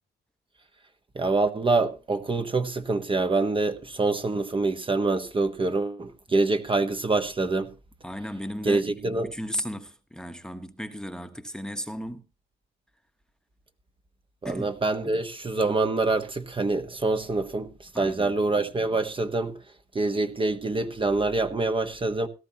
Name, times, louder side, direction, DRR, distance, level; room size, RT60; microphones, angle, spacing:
voice 1, 1.1-7.7 8.6-9.3 14.4-19.6 19.9-22.3, right 3 dB, 25° right, 1.2 m, -26 dB
voice 2, 8.0-8.8 9.2-12.2 14.4-14.7 17.9-18.3, equal, 5° left, 1.2 m, -35 dB
17.5 x 13.0 x 2.9 m
cardioid pair, 90°, 20 cm